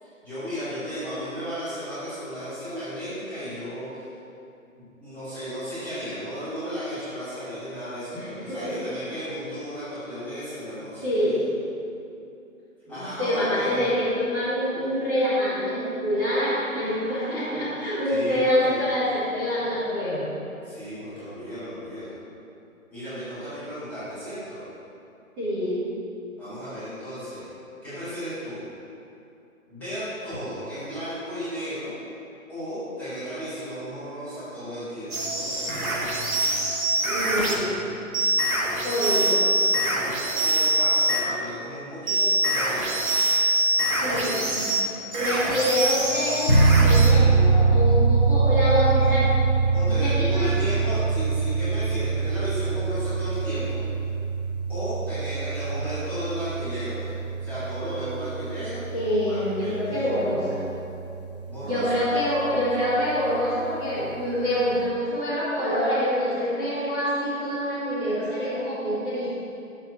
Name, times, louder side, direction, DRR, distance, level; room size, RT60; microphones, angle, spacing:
voice 1, 0.0-4.1 5.0-11.5 12.9-13.9 18.0-19.1 20.6-22.1 22.9-24.6 26.4-27.5 27.8-28.6 29.7-32.0 32.5-36.1 37.1-37.5 38.8-43.2 49.7-53.8 54.7-57.2 57.4-58.8 59.2-60.1 61.5-62.2, equal, 5° left, -16 dB, 1.8 m, -35 dB
voice 2, 8.1-8.7 11.0-11.4 12.9-20.3 25.4-25.8 37.0-37.7 38.8-39.3 44.0-44.8 45.2-49.3 49.9-50.5 58.9-60.6 61.6-69.3, equal, 10° right, -15 dB, 1.6 m, -26 dB
sound 1, 35.1-37.6 38.1-41.3 42.1-47.1, right 2 dB, 85° right, 1.9 m, -24 dB
sound 2, 46.5-60.9, right 4 dB, 30° left, 0.5 m, -23 dB
11.0 x 7.4 x 2.6 m, 2.7 s
hypercardioid pair, 160°, 42 cm